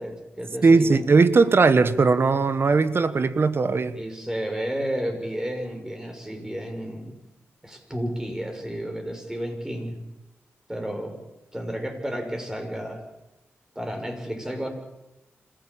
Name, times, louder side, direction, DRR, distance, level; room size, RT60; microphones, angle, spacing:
voice 1, 0.0-1.0 3.9-7.1 7.6-10.0 10.7-11.2 11.5-13.0 13.7-14.7, equal, 10° right, 6.5 m, -32 dB
voice 2, 0.6-4.0, right 4 dB, 55° right, 1.2 m, -19 dB
26.0 x 15.5 x 8.9 m
cardioid pair, 55°, 5 cm